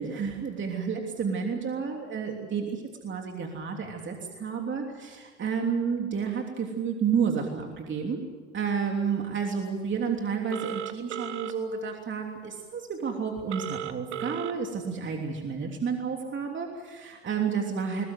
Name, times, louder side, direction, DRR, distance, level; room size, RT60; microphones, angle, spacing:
voice 1, 0.0-8.2 8.5-18.1, right 6 dB, 35° right, 2 dB, 3.2 m, -31 dB
Telephone, 10.5-11.5 13.5-14.5, right 10 dB, 90° right, 1.3 m, -35 dB
22.0 x 21.5 x 8.0 m, 1.5 s
hypercardioid pair, 80°, 34 cm